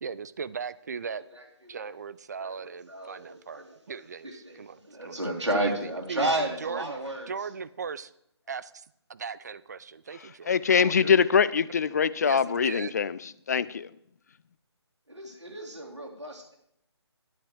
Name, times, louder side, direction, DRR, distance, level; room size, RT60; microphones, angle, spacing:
voice 1, 0.0-1.2 1.7-5.2 5.5-6.9 7.3-8.1 8.5-8.8 9.1-11.1 12.2-12.9, right 6 dB, 40° right, 0.5 m, -38 dB
voice 2, 2.4-4.0 4.2-7.3 15.1-16.5, right 1 dB, 85° right, 3.6 m, -32 dB
voice 3, 10.5-13.2 13.5-13.9, left 6 dB, 35° left, 0.4 m, -23 dB
10.5 x 9.8 x 4.7 m
figure-of-eight pair, 145°, 14 cm